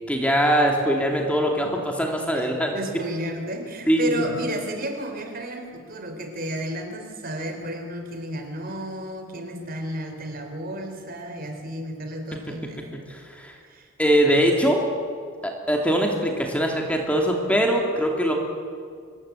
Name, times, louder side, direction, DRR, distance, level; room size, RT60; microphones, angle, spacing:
voice 1, 0.1-2.8 3.9-4.2 13.1-13.5 14.0-14.8 15.4-18.3, equal, 5° left, 1 dB, 2.8 m, -22 dB
voice 2, 2.3-12.9 13.7-13.9, right 1 dB, 45° right, 5 dB, 3.9 m, -32 dB
25.0 x 21.0 x 8.5 m, 2.2 s
head